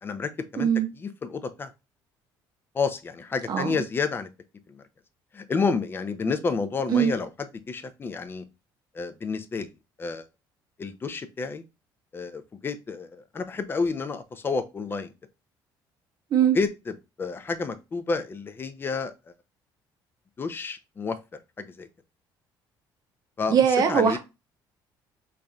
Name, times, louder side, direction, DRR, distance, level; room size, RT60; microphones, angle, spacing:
voice 1, 0.0-0.7 1.0-1.7 2.7-4.3 4.7-4.8 5.3-7.3 7.7-8.5 8.9-9.7 10.0-10.2 10.8-11.6 12.1-15.1 16.5-19.1 20.4-21.2 21.6-21.9 23.4-23.6 23.9-24.2, left 4 dB, 25° left, 0.4 m, -30 dB
voice 2, 0.6-0.9 3.5-3.8 6.9-7.1 16.3-16.6 23.5-24.2, right 8 dB, 50° right, 0.6 m, -21 dB
3.1 x 2.6 x 2.3 m
cardioid pair, 115°, 9 cm